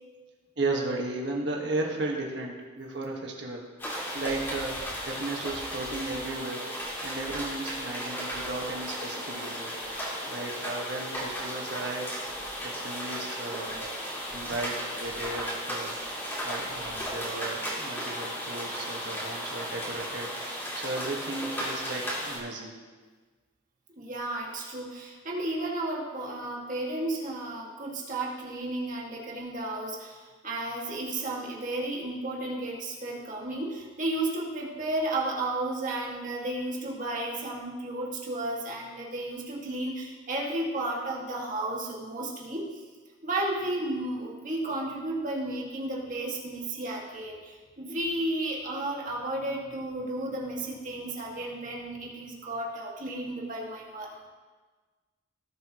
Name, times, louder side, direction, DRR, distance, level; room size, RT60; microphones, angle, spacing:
voice 1, 0.6-6.7 7.0-9.7 10.2-12.1 12.6-13.9 14.3-20.3 20.7-22.7, right 2 dB, 60° right, 0 dB, 1.5 m, -35 dB
sound 1, 3.8-22.4, equal, 10° left, 2.7 m, -35 dB
voice 2, 24.0-42.8 43.2-54.3, right 1 dB, 40° right, -3 dB, 2.0 m, -33 dB
18.0 x 7.7 x 3.0 m, 1.4 s
head